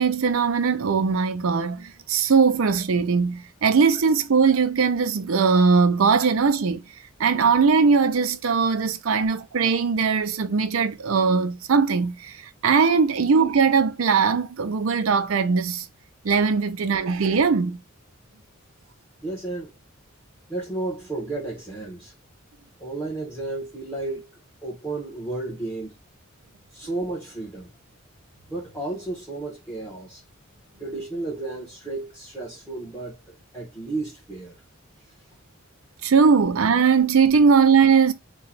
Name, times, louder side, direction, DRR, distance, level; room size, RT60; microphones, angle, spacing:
voice 1, 0.0-6.8 7.2-15.9 16.2-17.8 36.0-38.1, right 5 dB, 75° right, 0.5 m, -20 dB
voice 2, 19.2-19.8 20.5-22.1 22.8-24.2 24.6-25.9 26.7-27.7 28.5-30.2 30.8-34.6, right 2 dB, 5° left, 1.0 m, -32 dB
2.9 x 2.3 x 3.9 m
head